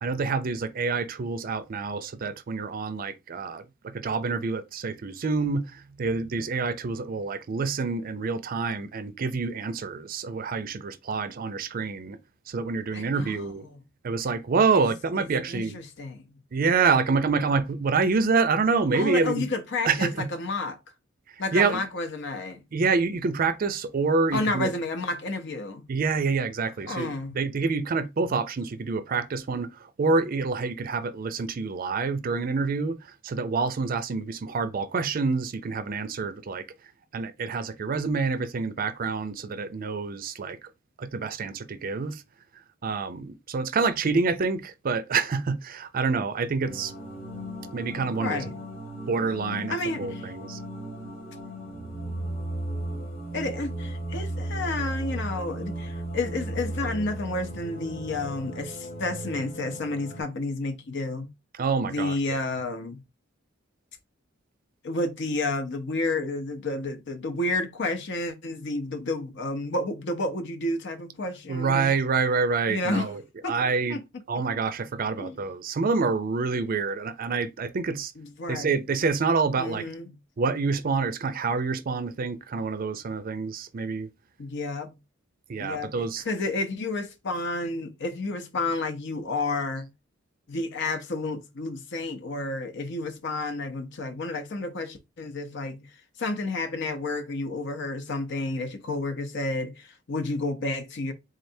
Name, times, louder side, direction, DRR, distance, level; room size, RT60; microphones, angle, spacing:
voice 1, 0.0-3.6 4.0-12.2 12.5-13.6 14.0-15.8 16.5-19.4 19.8-20.3 21.5-21.8 22.7-24.7 25.9-33.0 33.2-36.6 37.1-40.6 41.0-42.2 42.8-46.9 47.7-48.4 49.1-50.6 61.6-62.4 71.5-74.0 74.3-78.1 78.5-79.8 80.4-84.1 85.5-86.2, right 4 dB, 45° right, 0.4 m, -27 dB
voice 2, 12.9-13.8 14.7-14.8 15.2-16.4 18.9-20.8 21.4-22.6 24.3-25.9 26.9-27.4 48.2-48.5 49.7-50.3 53.3-61.3 61.8-63.0 64.8-71.8 72.7-73.1 73.4-73.5 73.9-74.0 75.2-75.4 78.2-78.8 79.6-80.2 84.4-85.0 85.6-89.9 90.5-95.9 96.2-101.1, left 2 dB, 60° left, 0.7 m, -31 dB
sound 1, 46.6-60.2, right 1 dB, 85° left, 1.8 m, -35 dB
3.8 x 3.2 x 2.7 m
head